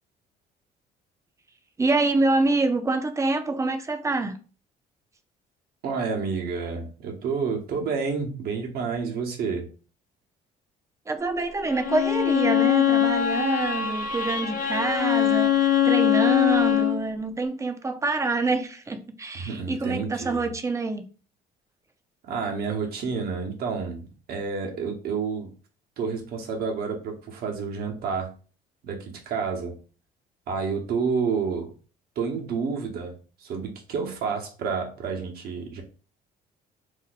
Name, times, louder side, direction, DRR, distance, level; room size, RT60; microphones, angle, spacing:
voice 1, 1.8-4.4 11.1-21.0, right 3 dB, 20° right, 0.4 m, -26 dB
voice 2, 5.8-9.7 19.4-20.5 22.2-25.5 26.0-28.3 28.8-29.7 30.5-31.7 32.2-35.8, right 5 dB, 65° right, 0.9 m, -29 dB
Bowed string instrument, 11.7-17.0, left 10 dB, 55° left, 0.6 m, -22 dB
2.7 x 2.2 x 4.0 m
cardioid pair, 110°, 17 cm